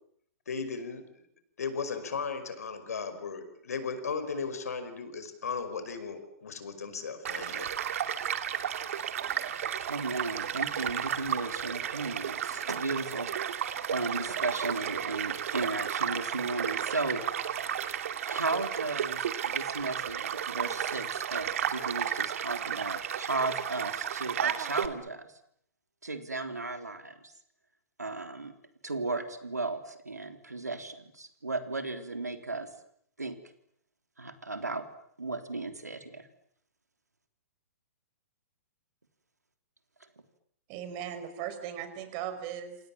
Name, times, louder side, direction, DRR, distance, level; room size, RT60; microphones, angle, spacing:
voice 1, 0.5-1.0 1.6-7.7, left 5 dB, 70° left, 10 dB, 5.4 m, -36 dB
Child speech kid speaking / Stream / Car passing by, 7.2-24.9, right 9 dB, 60° right, 2.4 m, -33 dB
voice 2, 9.9-17.2 17.9-18.0 18.3-25.3 26.0-27.3 28.0-28.5 28.8-32.7 33.2-33.4 34.2-34.9 35.2-36.3, right 3 dB, 85° right, 8 dB, 3.4 m, -35 dB
voice 3, 40.7-42.8, right 9 dB, 40° right, 10 dB, 5.7 m, -38 dB
28.0 x 27.5 x 7.4 m, 0.69 s
figure-of-eight pair, 115°, 9 cm